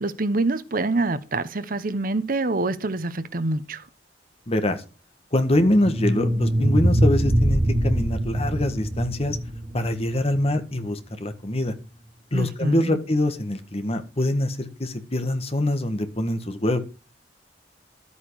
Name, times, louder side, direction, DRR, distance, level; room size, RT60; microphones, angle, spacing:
voice 1, 0.0-3.8 12.3-13.0, right 2 dB, 55° right, 1.0 m, -26 dB
voice 2, 4.5-4.8 5.3-9.4 9.7-11.7 12.3-16.8, left 1 dB, 35° left, 1.6 m, -24 dB
sound 1, 5.6-10.6, right 1 dB, 35° right, 1.3 m, -23 dB
12.5 x 8.5 x 4.8 m
head